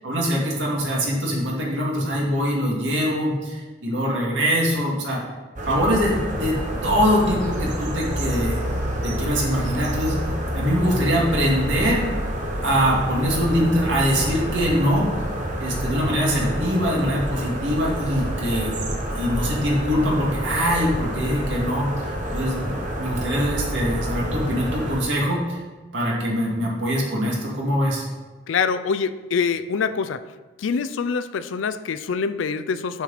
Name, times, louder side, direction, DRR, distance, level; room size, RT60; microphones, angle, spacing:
voice 1, 0.0-5.2 5.6-6.6 6.8-8.6 9.0-10.2 10.5-12.0 12.6-15.1 15.6-18.8 19.1-25.6 25.9-28.1, equal, 75° right, -3 dB, 2.0 m, -23 dB
sound 1, 5.6-25.0, equal, 40° right, 1.0 m, -28 dB
voice 2, 28.5-30.2 30.6-33.0, left 5 dB, 90° left, 13 dB, 0.4 m, -25 dB
7.0 x 6.0 x 4.1 m, 1.3 s
head